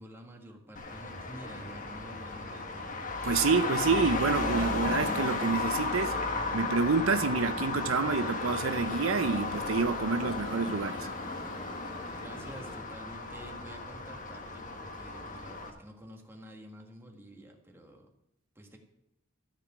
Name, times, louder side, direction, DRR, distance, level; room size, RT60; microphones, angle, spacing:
voice 1, 0.0-2.9 12.1-18.1 18.6-18.8, right 1 dB, 10° right, 1 dB, 1.6 m, -49 dB
Traffic noise roadway noise, 0.8-15.7, left 3 dB, 40° left, 1.4 m, -34 dB
voice 2, 3.2-6.2 6.5-11.1, right 4 dB, 75° right, 10 dB, 0.6 m, -28 dB
sound 1, 4.0-12.8, equal, 25° left, 2.1 m, -47 dB
13.5 x 4.9 x 8.8 m, 0.82 s
head